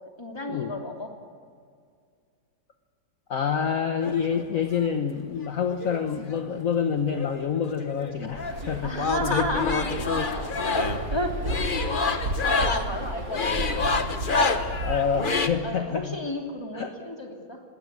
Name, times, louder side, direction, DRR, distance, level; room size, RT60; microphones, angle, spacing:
voice 1, 0.2-1.1 8.8-9.9 10.3-14.0 15.6-17.6, left 1 dB, 15° left, 1 dB, 3.0 m, -32 dB
voice 2, 3.3-9.6 14.7-16.2 16.7-16.9, left 7 dB, 55° left, 6 dB, 1.4 m, -27 dB
sound 1, 4.0-4.9 5.7-6.9 7.1-15.5, left 4 dB, 35° left, 1.1 m, -28 dB
Waves surf, 8.3-15.6, right 2 dB, 55° right, 2.5 m, -33 dB
20.5 x 17.5 x 9.5 m, 2.1 s
omnidirectional pair, 1.9 m